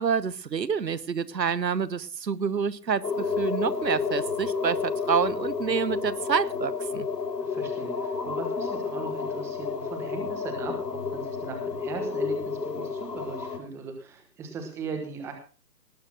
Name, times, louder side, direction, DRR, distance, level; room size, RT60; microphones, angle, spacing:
voice 1, 0.0-7.1, right 6 dB, 85° right, 1.1 m, -28 dB
sound 1, 3.0-13.6, left 5 dB, 75° left, 3.1 m, -31 dB
voice 2, 7.4-15.3, right 5 dB, 5° right, 1.1 m, -39 dB
18.5 x 6.5 x 6.1 m
figure-of-eight pair, 150°, 49 cm